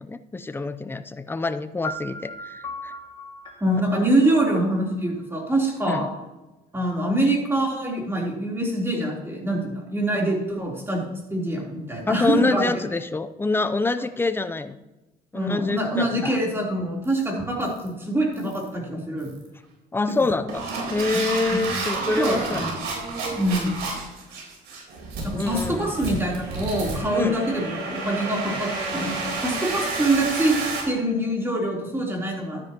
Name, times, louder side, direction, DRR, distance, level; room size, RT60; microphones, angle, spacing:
voice 1, 0.0-2.9 5.8-6.1 12.1-14.7 15.3-16.4 19.9-22.6 25.4-25.9 27.1-27.4, left 3 dB, 15° left, 10 dB, 0.6 m, -26 dB
sound 1, 1.8-5.7, left 1 dB, 30° left, 2.2 m, -38 dB
voice 2, 3.6-6.1 6.7-12.7 15.3-19.3 21.1-21.7 22.2-22.8 23.4-23.7 25.2-30.6 30.9-32.6, right 1 dB, 15° right, -2 dB, 3.5 m, -25 dB
sound 2, 17.0-17.2 17.6-17.9 18.3-18.7 19.2-19.5 20.1-30.8, right 3 dB, 80° right, 3.9 m, -30 dB
12.5 x 9.8 x 3.0 m, 1.0 s
cardioid pair, 110°, 17 cm